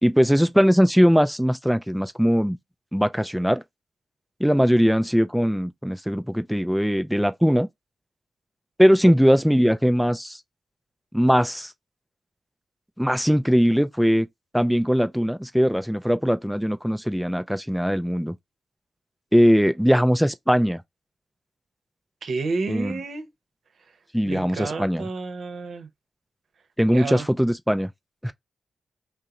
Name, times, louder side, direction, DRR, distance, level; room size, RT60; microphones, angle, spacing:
voice 1, 0.0-2.6 2.9-3.6 4.4-7.7 8.8-10.4 11.1-11.7 13.0-14.3 14.5-18.3 19.3-20.8 22.7-23.0 24.1-25.1 26.8-27.9 28.2-28.3, equal, ahead, 0.4 m, -20 dB
voice 2, 22.2-23.3 24.3-25.9 26.9-27.3, right 4 dB, 70° right, 0.7 m, -30 dB
2.8 x 2.0 x 3.6 m
cardioid pair, 50°, 0 cm